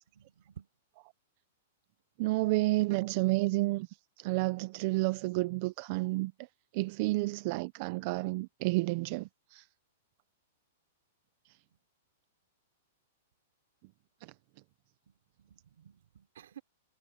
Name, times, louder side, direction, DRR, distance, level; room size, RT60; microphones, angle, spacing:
voice 1, 0.1-0.7 11.7-11.8 15.1-16.6, right 9 dB, 75° right, 3.4 m, -54 dB
voice 2, 2.2-3.9 4.2-6.3 6.7-9.6, right 21 dB, 45° right, 0.6 m, -30 dB
hypercardioid pair, 155°, 0 cm